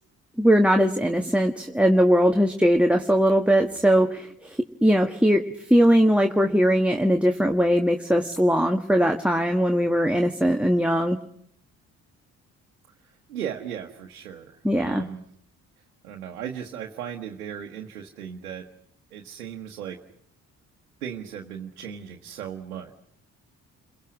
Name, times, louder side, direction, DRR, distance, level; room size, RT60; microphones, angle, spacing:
voice 1, 0.4-5.4 5.7-11.2 14.6-15.0, equal, 5° right, 6 dB, 1.6 m, -20 dB
voice 2, 13.3-15.2 16.0-18.6 19.1-20.0 21.0-22.9, right 9 dB, 90° right, 1 dB, 1.3 m, -36 dB
29.5 x 22.5 x 6.2 m, 0.69 s
hypercardioid pair, 40°, 43 cm